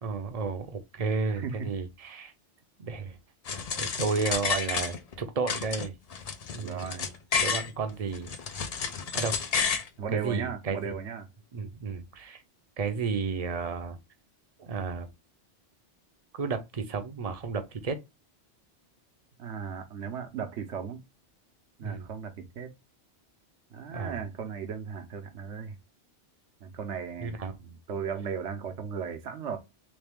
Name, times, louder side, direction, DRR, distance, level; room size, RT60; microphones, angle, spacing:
voice 1, 0.0-2.3 2.8-3.2 3.8-5.9 6.5-7.1 7.4-8.4 9.1-9.4 10.1-11.0 11.5-12.4 12.8-14.0 14.6-15.1 16.3-18.0 21.8-22.1 23.9-24.2 27.2-27.5, right 5 dB, 40° right, 0.6 m, -32 dB
voice 2, 1.2-1.7 6.6-7.1 10.0-11.3 19.4-21.0 21.8-22.7 23.7-25.8 26.6-29.6, right 6 dB, 80° right, 1.1 m, -36 dB
sound 1, 3.5-5.2 5.5-7.7 8.1-9.9, left 6 dB, 55° left, 0.4 m, -31 dB
3.3 x 3.2 x 3.5 m
omnidirectional pair, 1.2 m